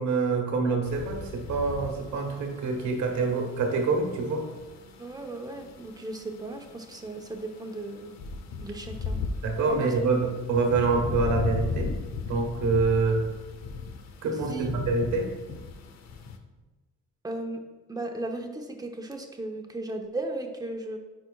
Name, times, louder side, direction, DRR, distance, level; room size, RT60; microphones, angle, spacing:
voice 1, 0.0-4.5 9.4-11.9 12.3-13.2 14.2-15.3, right 4 dB, 70° right, 3 dB, 1.3 m, -26 dB
sound 1, 0.8-16.4, left 4 dB, 65° left, 0.7 m, -37 dB
voice 2, 5.0-8.1 8.6-9.2 9.7-9.9 14.5-14.7 17.2-17.6 17.9-21.0, right 2 dB, 10° right, 3 dB, 0.9 m, -36 dB
9.8 x 4.4 x 2.3 m, 1.2 s
cardioid pair, 90°, 30 cm